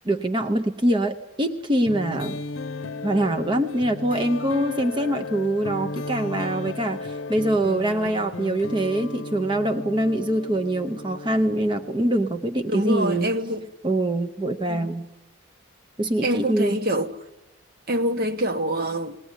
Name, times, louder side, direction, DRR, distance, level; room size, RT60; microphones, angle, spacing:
voice 1, 0.0-2.4 3.0-13.3 13.8-15.1 16.0-16.8, right 1 dB, 25° right, 0.7 m, -24 dB
sound 1, 1.9-12.4, left 3 dB, 80° left, 0.7 m, -35 dB
voice 2, 12.7-13.7 14.7-15.0 16.2-17.1 17.9-19.2, equal, 45° right, 1.1 m, -25 dB
20.0 x 19.5 x 9.7 m
head